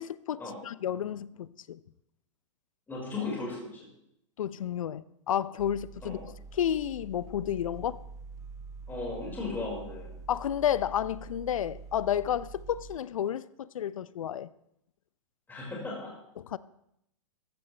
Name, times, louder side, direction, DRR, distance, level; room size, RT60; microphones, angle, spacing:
voice 1, 0.0-1.8 4.4-8.0 10.3-14.5 16.4-16.6, left 10 dB, 80° left, 0.6 m, -31 dB
voice 2, 2.9-3.9 6.0-6.2 8.9-10.1 15.5-16.1, left 3 dB, 10° left, 4.8 m, -36 dB
sound 1, 5.6-13.0, right 4 dB, 20° right, 0.7 m, -46 dB
15.0 x 13.5 x 3.2 m
hypercardioid pair, 125°, 17 cm